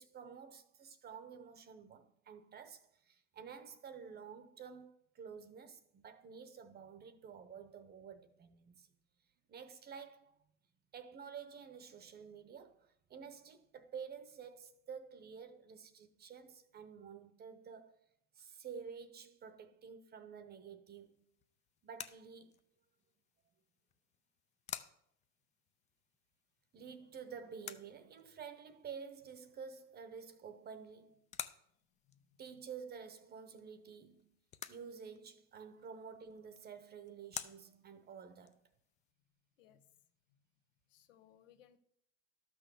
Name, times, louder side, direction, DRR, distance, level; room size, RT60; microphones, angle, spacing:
voice 1, 0.0-8.9 9.5-10.3 10.9-18.0 18.3-21.2 21.8-22.5 26.7-31.3 32.4-34.4 34.7-38.6, right 6 dB, 25° right, 0.8 m, -51 dB
sound 1, 20.9-39.1, left 9 dB, 20° left, 0.3 m, -53 dB
voice 2, 40.9-41.8, left 10 dB, 85° left, 1.2 m, -65 dB
12.0 x 6.1 x 6.7 m
supercardioid pair, 130°, 37 cm